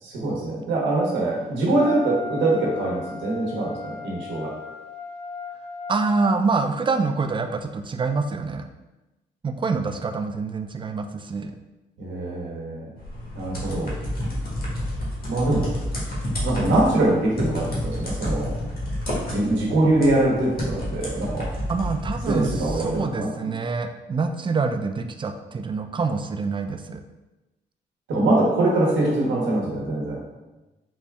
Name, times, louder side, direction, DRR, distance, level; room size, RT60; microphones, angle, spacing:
voice 1, 0.0-4.5 12.0-12.9 13.3-13.9 15.3-15.7 16.4-18.6 19.3-21.5 22.3-23.3 28.1-30.2, right 2 dB, 90° right, -3 dB, 0.9 m, -23 dB
Wind instrument woodwind instrument, 1.8-6.4, left 5 dB, 35° left, 0.5 m, -36 dB
voice 2, 5.9-8.7 9.4-11.6 21.7-27.0, right 4 dB, 25° right, 7 dB, 0.4 m, -26 dB
sound 1, 13.0-23.0, equal, 55° left, 1.4 m, -30 dB
4.0 x 2.3 x 3.3 m, 1.1 s
cardioid pair, 70°, 18 cm